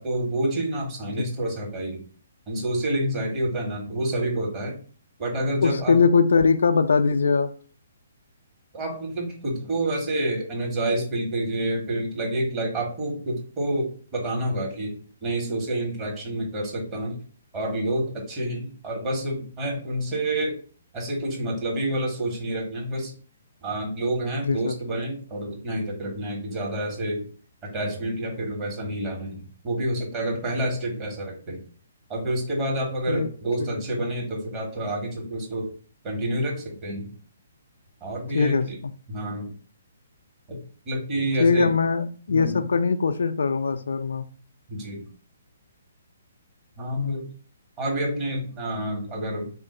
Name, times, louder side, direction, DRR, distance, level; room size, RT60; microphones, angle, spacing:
voice 1, 0.0-2.0 2.5-4.7 5.2-6.0 8.7-14.9 15.2-17.2 17.5-20.6 20.9-23.1 23.6-27.2 27.6-31.6 32.1-35.7 36.0-37.1 38.0-38.8 39.1-39.5 40.5-40.6 40.8-41.7 42.3-42.6 44.7-45.0 46.8-47.2 47.8-49.5, right 1 dB, 25° right, -2 dB, 1.3 m, -28 dB
voice 2, 5.6-7.5 24.4-24.8 33.1-33.3 33.6-33.8 38.3-38.7 41.4-44.2 46.9-47.2, left 5 dB, 65° left, 8 dB, 0.3 m, -21 dB
3.7 x 2.4 x 3.7 m, 0.42 s
figure-of-eight pair, 130°, 0 cm